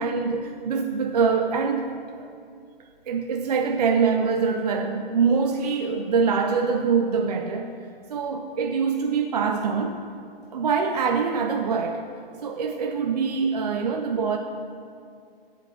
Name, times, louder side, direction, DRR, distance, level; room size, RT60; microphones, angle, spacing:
voice 1, 0.0-2.3 3.1-7.7 8.1-10.0 10.5-12.1 12.4-14.4, right 5 dB, 45° right, 4 dB, 0.4 m, -24 dB
8.8 x 5.2 x 6.3 m, 2.4 s
hypercardioid pair, 145°, 30 cm